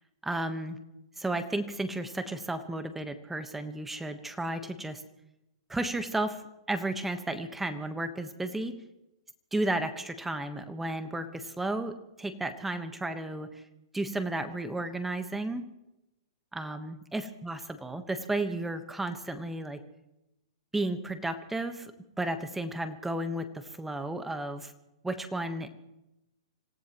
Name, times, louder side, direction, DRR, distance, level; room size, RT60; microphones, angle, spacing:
voice 1, 0.2-0.8 1.2-5.0 5.7-6.4 6.7-8.7 9.5-13.6 13.9-15.7 16.5-19.8 20.7-21.9 22.2-24.7 25.0-25.7, right 2 dB, 5° right, 9 dB, 1.2 m, -33 dB
27.0 x 17.0 x 3.1 m, 0.91 s
hypercardioid pair, 140°, 4 cm